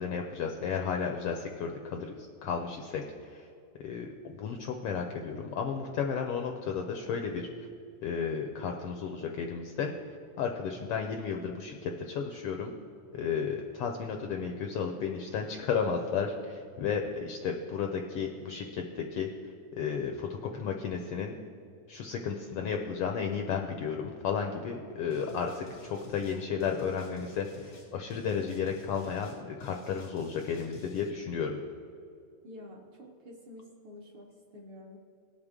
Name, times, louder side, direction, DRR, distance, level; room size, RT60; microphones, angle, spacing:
voice 1, 0.0-3.5 3.8-7.7 8.0-12.7 13.1-21.4 21.9-31.6, left 6 dB, 85° left, 4 dB, 1.3 m, -33 dB
sound 1, 25.1-31.1, left 4 dB, 65° left, 0.5 m, -51 dB
voice 2, 32.4-35.0, left 1 dB, 60° right, 0 dB, 1.5 m, -49 dB
18.0 x 6.7 x 3.6 m, 2.5 s
omnidirectional pair, 3.3 m